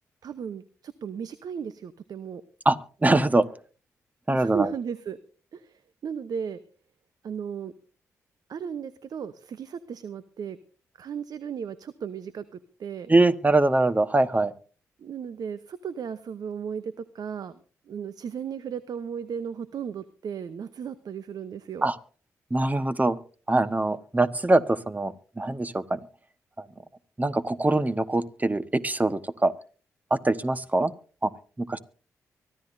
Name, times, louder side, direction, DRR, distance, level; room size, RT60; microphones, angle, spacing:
voice 1, 0.2-2.4 4.3-5.2 5.5-6.6 7.2-7.7 8.5-10.6 11.0-13.1 15.0-17.6 17.9-21.9, right 7 dB, 65° right, 13 dB, 0.8 m, -35 dB
voice 2, 2.6-3.4 4.3-4.7 13.1-14.5 21.8-22.0 22.5-23.2 23.5-26.0 26.6-26.7 27.2-29.5 30.1-30.9 31.2-31.3 31.6-31.8, right 2 dB, 20° right, 13 dB, 1.3 m, -23 dB
24.0 x 13.5 x 2.7 m, 0.39 s
hypercardioid pair, 40°, 7 cm